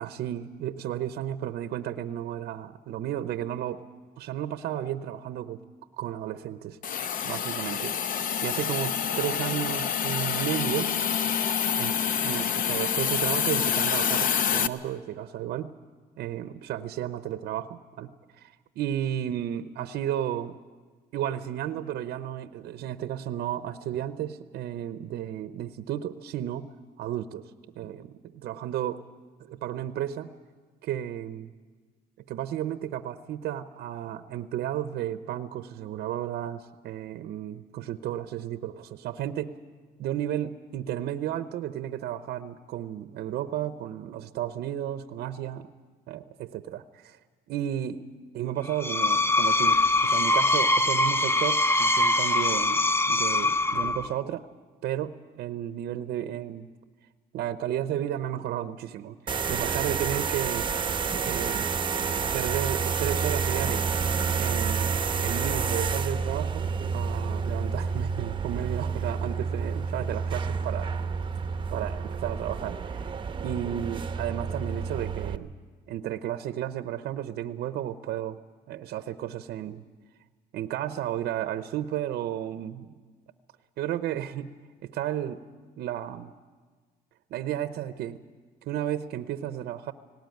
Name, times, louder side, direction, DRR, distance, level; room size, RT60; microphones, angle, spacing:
voice 1, 0.0-3.8 4.2-5.6 6.0-6.8 7.2-10.9 11.8-15.7 16.2-20.6 21.1-26.7 27.0-27.5 27.7-29.0 29.4-30.3 30.8-31.5 32.3-39.5 40.0-45.7 46.1-47.2 47.5-48.1 48.3-54.5 54.8-56.7 57.3-60.7 61.2-61.7 62.2-63.9 64.4-70.9 71.7-73.1 73.4-75.5 75.9-78.4 78.7-79.8 80.5-82.9 83.8-84.5 84.8-85.4 85.8-86.3 87.3-88.2 88.6-89.9, right 11 dB, 70° right, 11 dB, 0.8 m, -33 dB
Hiss, 6.8-14.7, left 8 dB, 55° left, 0.8 m, -27 dB
Screech, 48.7-54.2, left 2 dB, 15° left, 0.6 m, -23 dB
sound 1, 59.3-75.4, right 5 dB, 30° right, 0.9 m, -29 dB
18.5 x 18.0 x 9.2 m, 1.4 s
cardioid pair, 110°, 17 cm